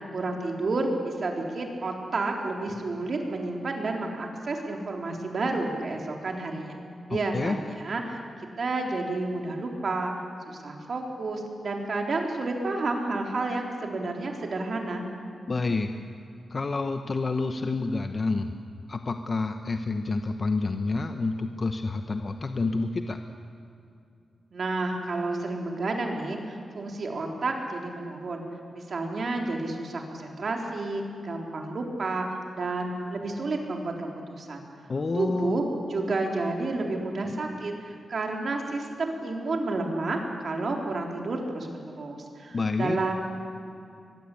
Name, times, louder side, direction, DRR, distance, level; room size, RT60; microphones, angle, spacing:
voice 1, 0.1-6.8 7.1-8.2 8.6-10.1 10.5-15.0 24.5-28.4 28.7-32.3 32.5-34.6 35.2-35.6 35.9-43.2, right 2 dB, 50° right, 1 dB, 3.8 m, -30 dB
voice 2, 7.1-7.6 15.5-15.9 16.5-18.5 18.9-23.2 34.9-35.6 42.5-43.0, left 3 dB, 40° left, 7 dB, 1.0 m, -28 dB
23.0 x 21.5 x 8.6 m, 2.6 s
wide cardioid pair, 120°, 0 cm